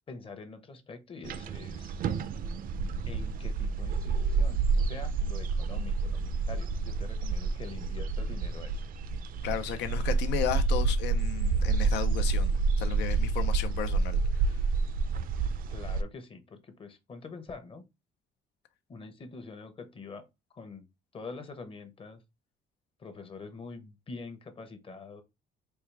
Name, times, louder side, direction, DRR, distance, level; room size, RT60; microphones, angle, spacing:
voice 1, 0.1-2.0 3.1-8.8 15.7-17.8 18.9-20.3 20.5-20.8 21.1-22.2 23.0-25.2, left 4 dB, 30° left, 0.8 m, -45 dB
sound 1, 1.2-16.0, right 4 dB, 55° right, 0.5 m, -29 dB
voice 2, 9.4-14.6, left 10 dB, 90° left, 0.6 m, -34 dB
4.4 x 2.3 x 3.3 m
cardioid pair, 115°, 17 cm